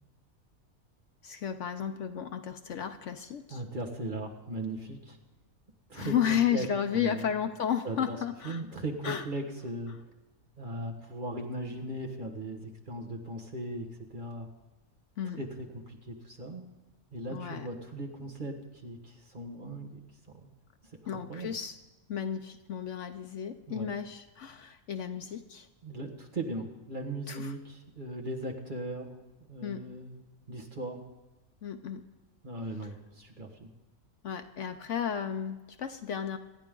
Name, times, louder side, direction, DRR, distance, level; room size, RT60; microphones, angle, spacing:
voice 1, 1.2-3.6 5.9-8.6 9.0-9.2 15.2-15.4 17.3-17.7 21.1-21.8 22.1-25.7 27.3-27.5 29.6-29.8 31.6-32.0 34.2-36.4, left 8 dB, 60° left, 8 dB, 1.0 m, -33 dB
voice 2, 3.5-5.2 5.9-7.3 7.8-8.2 8.4-9.9 10.6-14.5 15.4-16.6 17.1-20.0 20.3-20.5 20.8-21.6 23.7-23.9 25.8-29.1 29.5-30.2 30.5-31.0 32.4-33.7, right 1 dB, 35° right, 2 dB, 1.7 m, -38 dB
27.0 x 10.0 x 3.8 m, 1.1 s
omnidirectional pair, 1.5 m